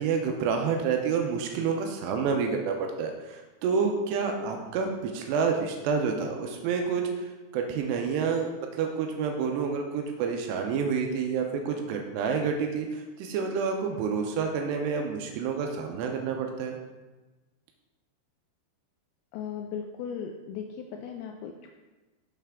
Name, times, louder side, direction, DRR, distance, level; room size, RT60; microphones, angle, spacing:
voice 1, 0.0-7.1 7.5-8.5 8.8-16.8, right 5 dB, 85° right, 3 dB, 2.7 m, -28 dB
voice 2, 19.3-21.7, left 7 dB, 85° left, 2 dB, 2.2 m, -37 dB
7.4 x 5.7 x 3.5 m, 1.2 s
omnidirectional pair, 4.8 m